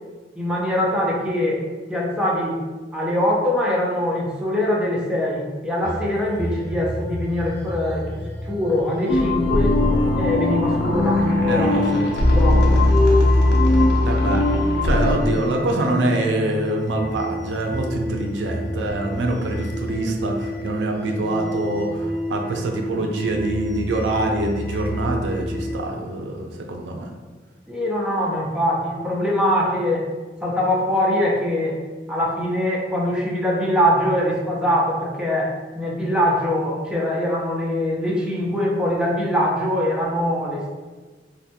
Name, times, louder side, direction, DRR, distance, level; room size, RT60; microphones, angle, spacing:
voice 1, 0.4-2.6 2.9-9.7 10.2-11.9 12.3-12.8 27.7-30.1 30.4-31.8 32.1-40.7, left 1 dB, 5° right, -4 dB, 0.4 m, -23 dB
sound 1, 5.8-25.7, equal, 15° left, 1.1 m, -31 dB
sound 2, 9.1-15.2, left 2 dB, 65° left, 0.4 m, -18 dB
voice 2, 11.5-12.0 14.0-14.4 14.7-27.1, right 2 dB, 75° right, 2 dB, 0.4 m, -25 dB
2.5 x 2.1 x 2.7 m, 1.3 s
head